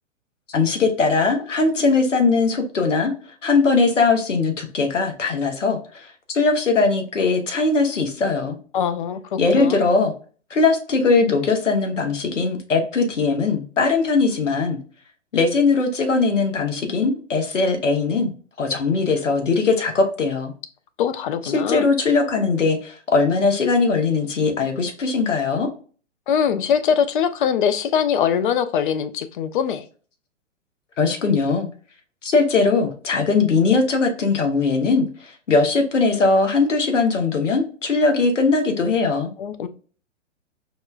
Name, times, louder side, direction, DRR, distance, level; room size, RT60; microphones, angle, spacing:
voice 1, 0.5-3.1 3.4-8.6 9.4-10.1 10.5-14.8 15.3-18.3 18.6-20.5 21.4-25.7 31.0-31.7 32.2-39.3, left 4 dB, 80° left, 1.0 m, -20 dB
voice 2, 8.7-9.8 21.0-21.8 26.3-29.8 39.4-39.7, left 8 dB, 45° left, 0.5 m, -22 dB
5.2 x 2.2 x 2.3 m
figure-of-eight pair, 115°, 37 cm